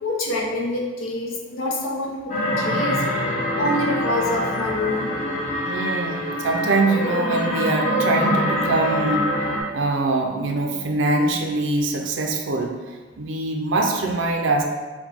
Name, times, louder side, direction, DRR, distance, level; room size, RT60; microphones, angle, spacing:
voice 1, 0.0-3.0 3.6-5.1, left 1 dB, 80° left, -2 dB, 0.8 m, -26 dB
sound 1, 2.3-9.6, equal, 35° left, 0.7 m, -24 dB
voice 2, 5.6-9.3 9.7-12.8 13.2-14.6, right 2 dB, 70° right, 2 dB, 0.5 m, -23 dB
4.9 x 2.2 x 3.4 m, 1.3 s
head